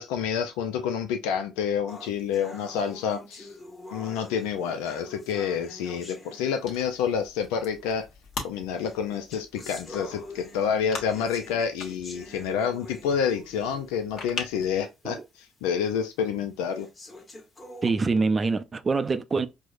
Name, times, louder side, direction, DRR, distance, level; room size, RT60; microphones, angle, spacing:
voice 1, 0.0-3.5 3.9-8.1 8.4-16.9, left 7 dB, 85° left, 0.4 m, -28 dB
sound 1, 1.9-7.0 7.9-8.0 8.8-14.0 14.5-14.6 15.1-15.2 15.9-16.0 16.7-17.9, left 2 dB, 25° left, 1.4 m, -46 dB
sound 2, 6.6-14.8, left 4 dB, 60° left, 1.2 m, -42 dB
voice 2, 17.8-19.5, right 4 dB, 30° right, 0.4 m, -25 dB
4.6 x 2.1 x 2.4 m
supercardioid pair, 75°, 0 cm